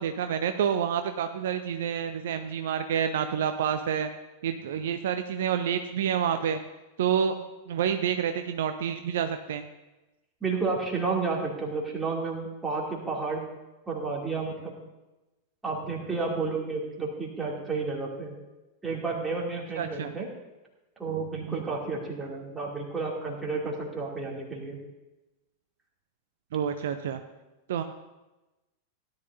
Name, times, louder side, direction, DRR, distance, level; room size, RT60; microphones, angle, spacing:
voice 1, 0.0-4.1 4.4-6.6 7.0-9.6 19.8-20.1 21.5-21.6 26.5-27.2 27.7-27.8, right 8 dB, 60° right, 8 dB, 0.5 m, -28 dB
voice 2, 10.4-13.4 13.9-14.7 15.6-18.3 18.8-20.3 21.0-24.8, right 4 dB, 10° right, -2 dB, 2.5 m, -31 dB
16.5 x 10.5 x 2.6 m, 1.1 s
figure-of-eight pair, 90°, 0 cm